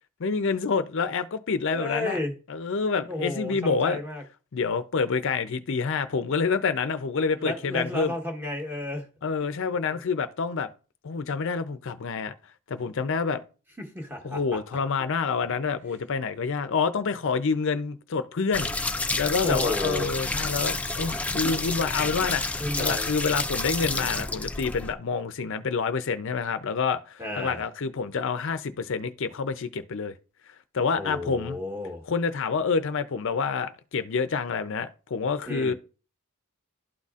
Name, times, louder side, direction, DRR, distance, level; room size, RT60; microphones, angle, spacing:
voice 1, 0.2-2.2 2.5-4.0 4.5-8.1 9.2-10.7 11.0-12.3 12.7-13.4 14.2-30.1 30.7-31.6 32.1-35.7, left 5 dB, 60° left, 0.5 m, -27 dB
voice 2, 1.7-2.3 3.1-4.2 7.4-9.1 9.9-10.0 13.8-14.6 19.4-20.1 22.6-23.1 27.2-27.6 31.0-32.0 35.5-35.7, left 1 dB, 10° right, 1.3 m, -32 dB
sound 1, 18.5-24.9, left 2 dB, 5° left, 0.3 m, -29 dB
12.0 x 4.1 x 2.4 m
head